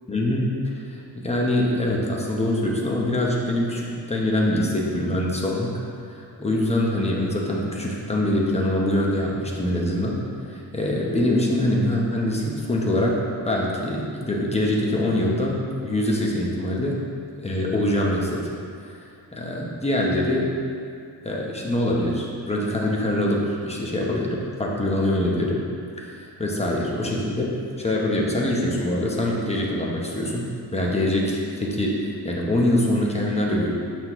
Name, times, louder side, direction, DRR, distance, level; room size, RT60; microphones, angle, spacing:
voice 1, 0.1-0.6 0.9-5.7 6.1-10.2 10.5-17.0 17.4-18.4 18.8-19.0 19.3-20.5 21.2-25.6 26.0-33.7, left 1 dB, 15° left, -3 dB, 0.8 m, -24 dB
6.2 x 5.8 x 3.0 m, 2.4 s
wide cardioid pair, 130°, 42 cm